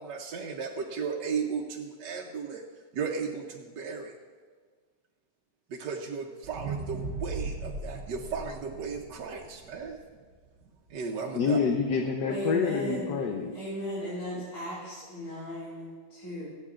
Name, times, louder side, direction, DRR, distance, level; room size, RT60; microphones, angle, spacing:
voice 1, 0.0-2.6 2.9-4.2 5.7-10.0 10.9-11.6 12.8-12.9, right 5 dB, 80° right, -1 dB, 1.5 m, -35 dB
sound 1, 6.4-10.7 11.2-11.3, right 4 dB, 60° right, 1.3 m, -38 dB
voice 2, 11.4-13.6 14.3-14.4, left 5 dB, 70° left, 3 dB, 1.3 m, -27 dB
voice 3, 12.3-13.2 13.5-16.4, equal, 55° left, -9 dB, 3.9 m, -36 dB
26.0 x 8.8 x 2.5 m, 1.5 s
omnidirectional pair, 1.9 m